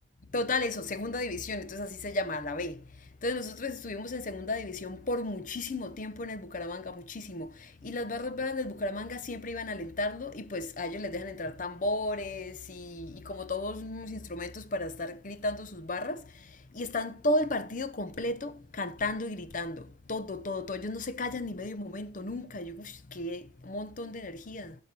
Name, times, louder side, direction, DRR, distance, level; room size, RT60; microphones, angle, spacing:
voice 1, 0.3-2.8 3.2-16.2 16.7-24.8, left 2 dB, 45° left, 0.7 m, -34 dB
12.0 x 4.4 x 4.7 m
head